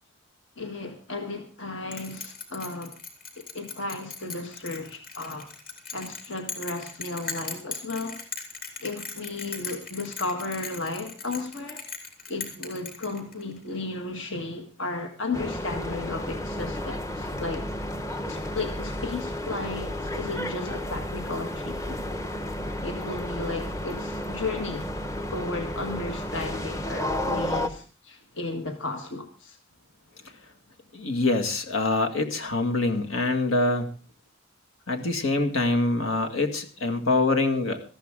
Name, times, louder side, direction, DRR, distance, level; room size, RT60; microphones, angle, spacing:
voice 1, 0.6-2.9 3.4-5.5 5.9-8.2 8.8-11.8 12.3-17.7 18.2-22.0 22.8-24.9 25.3-29.6, left 3 dB, 65° left, 1.7 m, -34 dB
Bell, 1.9-13.6, left 5 dB, 45° left, 3.5 m, -38 dB
sound 1, 15.3-27.7, left 1 dB, 15° left, 0.8 m, -32 dB
voice 2, 30.9-33.9 34.9-37.8, left 2 dB, 80° left, 2.1 m, -25 dB
19.0 x 14.0 x 3.7 m
head